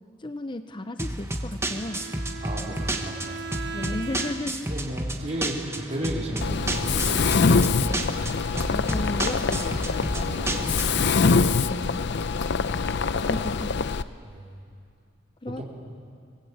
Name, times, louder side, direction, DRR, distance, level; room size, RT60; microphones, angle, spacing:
voice 1, 0.2-2.1 3.7-4.7 8.7-10.1 11.6-12.1 13.2-13.8 15.4-15.6, left 1 dB, 25° left, 9 dB, 0.6 m, -34 dB
sound 1, 1.0-11.1, right 1 dB, 15° right, 1.3 m, -31 dB
Bowed string instrument, 1.7-4.7, right 4 dB, 60° right, 1.0 m, -38 dB
voice 2, 2.4-3.4 4.6-8.3 10.1-11.2 14.2-14.5 15.5-15.6, equal, 35° right, -3 dB, 4.4 m, -35 dB
Mechanisms, 6.4-14.0, left 4 dB, 60° left, 0.6 m, -24 dB
24.0 x 20.0 x 8.5 m, 2.3 s
head